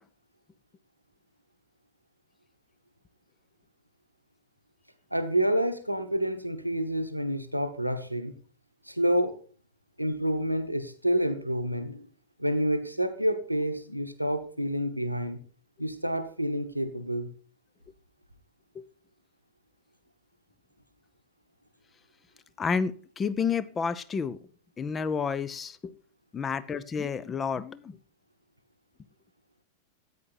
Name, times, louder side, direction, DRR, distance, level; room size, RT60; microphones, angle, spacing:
voice 1, 5.1-8.4 8.8-9.4 10.0-12.1 12.4-15.4 15.8-17.3, equal, 90° right, 1.2 m, -28 dB
voice 2, 22.6-24.4 24.8-25.9 26.3-28.0, left 6 dB, 20° left, 0.7 m, -30 dB
13.5 x 8.8 x 4.4 m
figure-of-eight pair, 90°, 0 cm